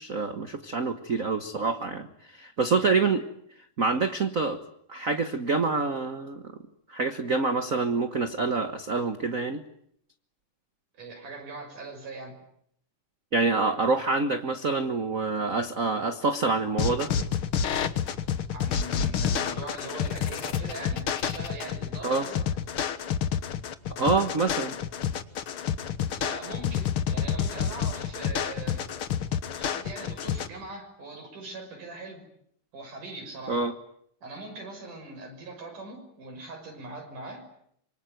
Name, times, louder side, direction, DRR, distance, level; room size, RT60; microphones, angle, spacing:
voice 1, 0.0-3.2 3.8-4.6 4.9-6.5 6.9-9.6 13.3-17.1 22.0-22.3 24.0-24.8 33.5-33.7, right 4 dB, 40° right, 9 dB, 1.1 m, -26 dB
voice 2, 11.0-12.4 18.5-22.5 26.1-28.9 29.6-32.2 32.7-33.6 34.2-37.5, right 2 dB, 85° right, 4 dB, 7.8 m, -41 dB
sound 1, 16.8-30.5, left 8 dB, 55° left, 1.8 m, -29 dB
26.0 x 24.0 x 9.3 m, 0.69 s
omnidirectional pair, 3.5 m